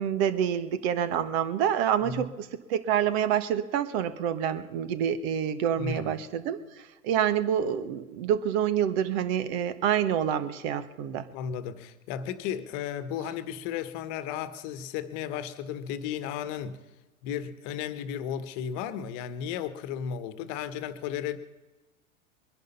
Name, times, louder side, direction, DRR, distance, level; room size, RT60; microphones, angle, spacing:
voice 1, 0.0-2.3 2.7-6.6 7.0-11.2, right 9 dB, 45° right, 1.4 m, -27 dB
voice 2, 2.0-2.3 5.8-6.2 11.3-16.8 17.2-21.4, left 8 dB, 40° left, 1.4 m, -34 dB
22.5 x 10.5 x 5.6 m
hypercardioid pair, 105°, 43 cm